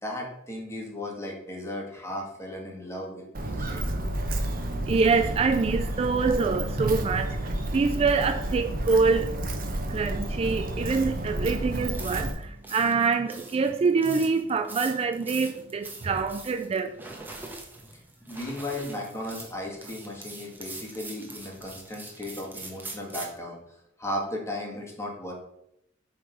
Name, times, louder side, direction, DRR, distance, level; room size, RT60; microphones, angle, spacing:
voice 1, 0.0-3.8 17.9-25.3, left 1 dB, 15° left, 1.7 m, -36 dB
Walk footsteps, 3.3-12.3, right 1 dB, 50° right, 0.9 m, -31 dB
voice 2, 4.8-9.3 9.9-17.0, right 4 dB, 30° right, 0.3 m, -25 dB
sound 1, 11.9-23.4, right 2 dB, 10° right, 1.2 m, -43 dB
7.7 x 3.8 x 4.9 m
head